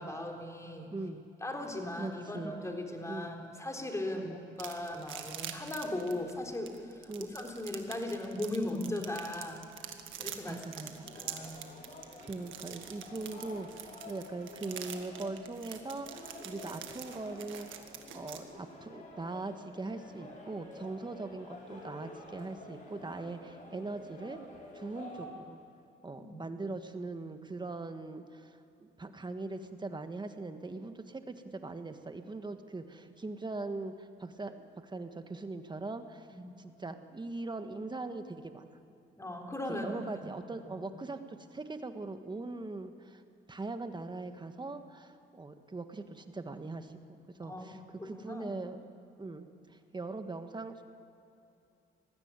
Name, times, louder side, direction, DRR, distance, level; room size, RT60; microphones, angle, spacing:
voice 1, 0.0-0.9 1.4-9.7 10.2-10.6 11.1-11.6 26.3-26.4 36.3-36.6 39.2-39.9 40.2-40.3 40.7-40.8 47.4-47.7 48.0-48.5, left 1 dB, 15° left, 1 dB, 3.7 m, -38 dB
voice 2, 0.9-1.2 2.0-2.6 3.1-3.3 4.1-4.4 7.1-7.3 10.4-11.1 12.2-17.8 18.1-24.4 24.7-25.6 26.0-36.3 36.6-38.8 39.7-43.2 43.5-48.8 49.2-50.8, right 3 dB, 20° right, 8 dB, 1.5 m, -41 dB
sound 1, 4.6-18.4, right 10 dB, 80° right, 1.7 m, -45 dB
sound 2, 11.0-25.3, left 2 dB, 40° left, 5.9 m, -50 dB
20.0 x 15.0 x 9.1 m, 2.8 s
cardioid pair, 90°, 20 cm